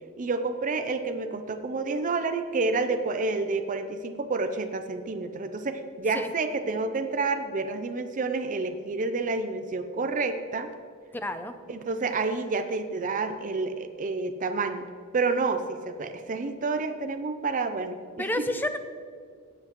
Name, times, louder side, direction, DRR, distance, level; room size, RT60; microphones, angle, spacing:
voice 1, 0.2-10.7 11.7-14.8 15.1-18.5, right 3 dB, 35° right, 7 dB, 0.5 m, -29 dB
voice 2, 11.1-11.6 18.2-18.8, left 1 dB, 10° left, 9 dB, 0.5 m, -30 dB
16.5 x 7.8 x 3.0 m, 2.2 s
head